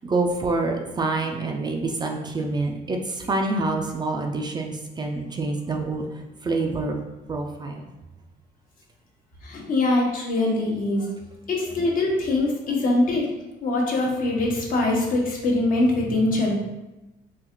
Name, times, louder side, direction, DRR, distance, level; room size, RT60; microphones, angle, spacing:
voice 1, 0.0-6.1 6.4-7.0 7.3-7.8, right 3 dB, 25° right, 2 dB, 0.4 m, -26 dB
voice 2, 9.4-11.1 11.5-13.3 13.6-16.6, left 2 dB, 55° left, -1 dB, 0.9 m, -23 dB
3.8 x 2.4 x 2.9 m, 0.99 s
cardioid pair, 110°, 17 cm